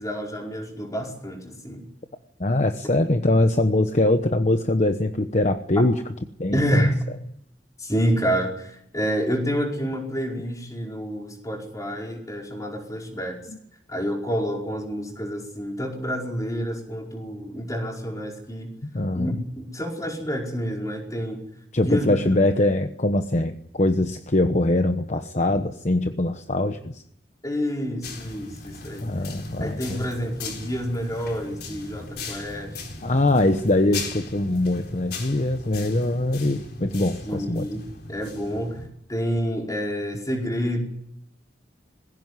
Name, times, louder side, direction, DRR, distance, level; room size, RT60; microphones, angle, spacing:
voice 1, 0.0-1.9 6.5-7.0 7.8-13.4 13.9-18.8 19.1-21.4 21.8-22.3 27.4-29.1 29.6-32.8 37.2-38.8 39.1-40.8, equal, 20° left, 1 dB, 5.0 m, -28 dB
voice 2, 2.4-6.0 6.4-6.9 13.5-13.6 18.8-19.4 21.7-27.0 29.0-30.1 33.0-37.7, left 1 dB, 40° left, 8 dB, 1.1 m, -22 dB
sound 1, 28.0-38.9, left 3 dB, 65° left, 4.4 m, -38 dB
20.5 x 16.5 x 9.7 m, 0.73 s
head